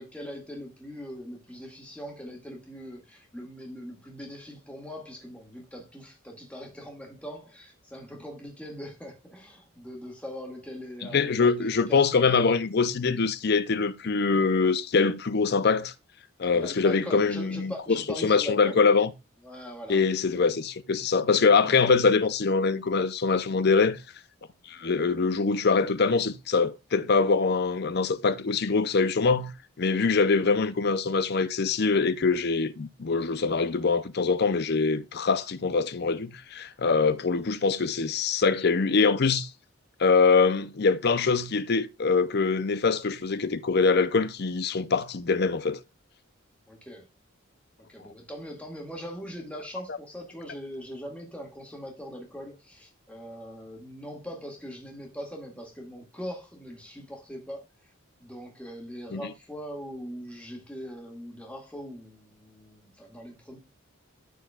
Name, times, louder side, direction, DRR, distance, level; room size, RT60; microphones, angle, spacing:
voice 1, 0.0-12.1 16.4-18.8 19.4-20.0 20.3-20.5 46.7-47.0 47.9-57.6 58.2-63.6, equal, 5° left, 1.9 m, -41 dB
voice 2, 11.0-15.9 16.4-19.1 19.9-24.0 24.7-39.5 40.0-45.8 49.9-50.0 59.1-59.2, left 4 dB, 50° left, 0.5 m, -24 dB
13.0 x 4.6 x 2.3 m
head